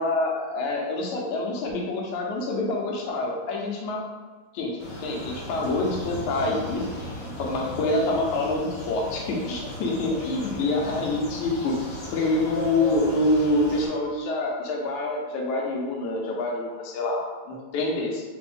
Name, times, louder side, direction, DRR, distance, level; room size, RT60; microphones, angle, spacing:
voice 1, 0.0-4.0 4.5-6.8 7.4-11.8 12.1-18.2, left 2 dB, 85° left, -1 dB, 2.2 m, -26 dB
sound 1, 4.8-13.9, left 1 dB, 60° left, 1.8 m, -36 dB
5.0 x 2.6 x 3.6 m, 1.4 s
omnidirectional pair, 3.4 m